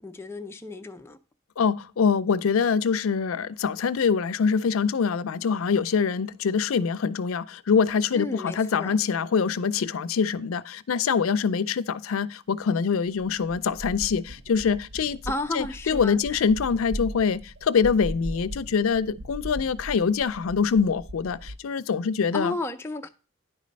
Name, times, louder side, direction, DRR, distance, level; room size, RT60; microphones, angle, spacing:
voice 1, 0.0-1.2 8.1-9.0 15.3-16.4 22.3-23.1, left 2 dB, 10° left, 0.4 m, -33 dB
voice 2, 1.6-15.2 15.5-22.5, left 6 dB, 85° left, 0.4 m, -24 dB
sound 1, 12.7-12.8 13.1-21.6, right 1 dB, 55° right, 0.5 m, -39 dB
9.9 x 4.2 x 5.2 m
head